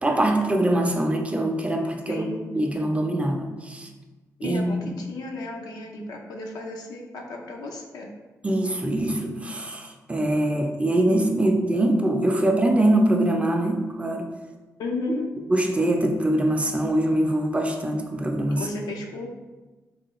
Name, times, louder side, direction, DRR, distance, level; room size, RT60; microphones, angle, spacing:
voice 1, 0.0-2.3 2.6-3.9 4.4-4.9 8.4-14.3 15.5-18.6, right 1 dB, 20° right, 3 dB, 0.4 m, -23 dB
voice 2, 2.1-2.5 4.4-8.1 14.8-15.3 18.6-19.3, left 2 dB, 85° left, 1 dB, 0.4 m, -34 dB
3.2 x 2.3 x 2.9 m, 1.2 s
cardioid pair, 65°, 6 cm